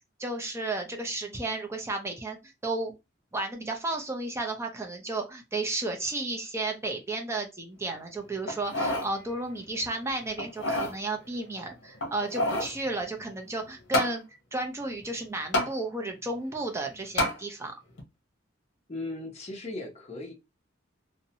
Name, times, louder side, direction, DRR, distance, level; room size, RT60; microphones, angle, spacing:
voice 1, 0.2-3.0 3.3-17.7, right 2 dB, 15° right, 0.4 m, -33 dB
sound 1, 8.5-9.1 9.6-9.7 10.4-11.0 12.0-12.8 13.9-14.2 15.5-15.7 17.2-17.4 18.0-18.1, left 1 dB, 70° left, 0.8 m, -28 dB
voice 2, 18.9-20.3, left 2 dB, 35° left, 0.6 m, -37 dB
2.7 x 2.0 x 2.7 m
head